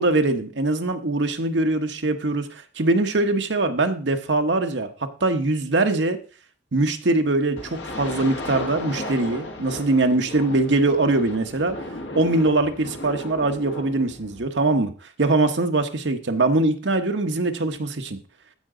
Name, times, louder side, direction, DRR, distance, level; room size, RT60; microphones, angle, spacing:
voice 1, 0.0-4.9 5.2-6.2 6.7-11.8 12.1-14.9 15.2-18.2, right 2 dB, 75° right, 6 dB, 1.0 m, -22 dB
sound 1, 7.6-14.5, left 1 dB, 75° left, 1.5 m, -35 dB
15.0 x 5.0 x 3.7 m, 0.38 s
head